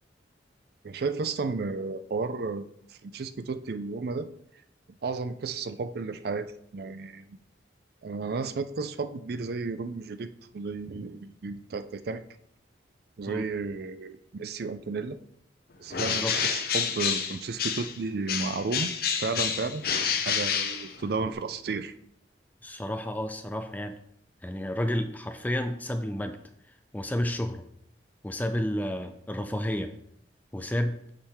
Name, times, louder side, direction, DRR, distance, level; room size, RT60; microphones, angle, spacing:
voice 1, 0.8-4.3 5.0-7.4 8.0-12.2 13.2-15.2 15.8-19.9 20.2-21.9, right 4 dB, 55° right, 11 dB, 0.4 m, -33 dB
Bird, 15.9-18.0 18.3-21.3, left 7 dB, 55° left, 0.7 m, -29 dB
voice 2, 16.0-16.3 22.6-23.9 24.4-26.4 26.9-27.6 28.2-29.9 30.5-31.0, left 1 dB, 10° left, 7 dB, 0.4 m, -31 dB
7.2 x 4.8 x 3.5 m, 0.71 s
head